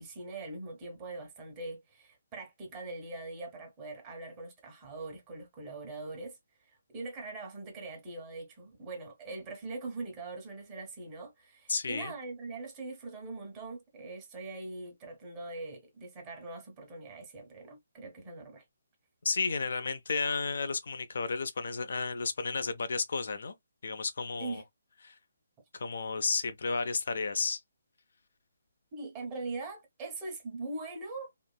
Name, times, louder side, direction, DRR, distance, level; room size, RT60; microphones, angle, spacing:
voice 1, 0.0-18.6 24.4-24.6 28.9-31.3, right 3 dB, 25° right, 1.2 m, -42 dB
voice 2, 11.7-12.1 19.2-23.5 23.8-24.6 25.0-25.1 25.7-27.6, left 4 dB, 65° left, 0.4 m, -32 dB
2.9 x 2.5 x 2.2 m
figure-of-eight pair, 145°, 0 cm